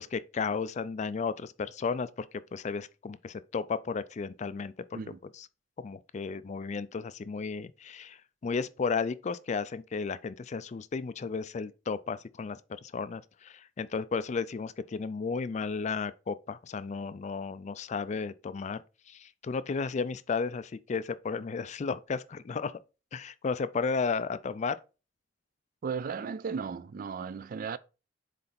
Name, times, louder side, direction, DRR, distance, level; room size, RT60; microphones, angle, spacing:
voice 1, 0.0-2.3 2.5-4.7 5.8-8.2 8.4-18.8 19.1-22.8 23.1-24.8, left 5 dB, 35° left, 0.3 m, -33 dB
voice 2, 25.8-27.8, right 6 dB, 45° right, 0.3 m, -35 dB
7.7 x 3.3 x 4.1 m
head